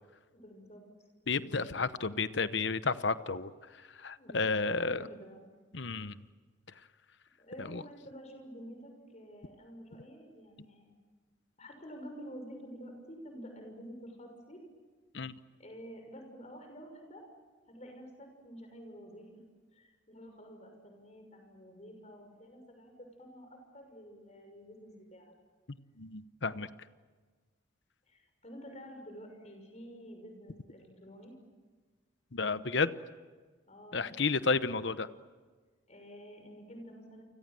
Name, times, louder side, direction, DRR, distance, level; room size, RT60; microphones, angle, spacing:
voice 1, 0.3-0.9 1.4-1.7 4.2-5.4 7.4-11.0 11.6-14.6 15.6-17.2 17.7-19.4 19.7-22.9 23.2-25.3 28.1-31.4 33.7-34.4 35.9-37.2, equal, 35° left, 4 dB, 6.3 m, -49 dB
voice 2, 1.3-3.5 4.0-5.0 5.7-6.2 7.6-7.8 15.1-15.3 26.0-26.7 32.3-32.9 33.9-35.1, left 4 dB, 60° left, 13 dB, 1.0 m, -31 dB
30.0 x 25.0 x 7.7 m, 1.4 s
head